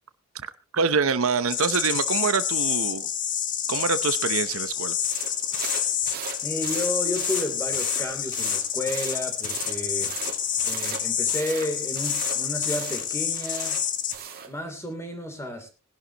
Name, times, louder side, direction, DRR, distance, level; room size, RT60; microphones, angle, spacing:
voice 1, 0.7-3.1 3.7-5.0, right 5 dB, 65° right, 12 dB, 0.8 m, -25 dB
sound 1, 1.5-14.1, left 9 dB, 35° left, 1.2 m, -28 dB
sound 2, 5.0-14.5, right 7 dB, 45° right, 2.3 m, -38 dB
voice 2, 6.4-10.1 10.6-13.8 14.5-15.7, left 1 dB, 10° left, 6 dB, 3.2 m, -32 dB
20.0 x 11.5 x 3.0 m, 0.31 s
head